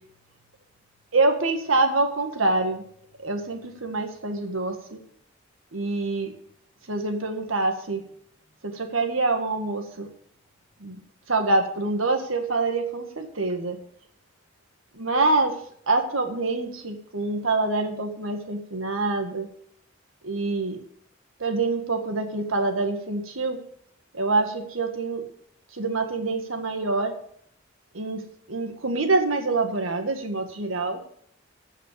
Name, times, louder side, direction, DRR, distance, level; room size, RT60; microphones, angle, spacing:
voice 1, 1.1-2.8 3.2-5.0 5.7-6.3 6.9-8.0 8.6-10.1 10.8-11.0 11.3-13.8 14.9-15.6 15.9-19.5 20.2-20.8 21.4-23.6 24.1-25.2 25.7-27.1 27.9-28.2 28.5-31.0, right 3 dB, 80° right, 5 dB, 1.8 m, -25 dB
15.5 x 5.7 x 6.8 m, 0.65 s
head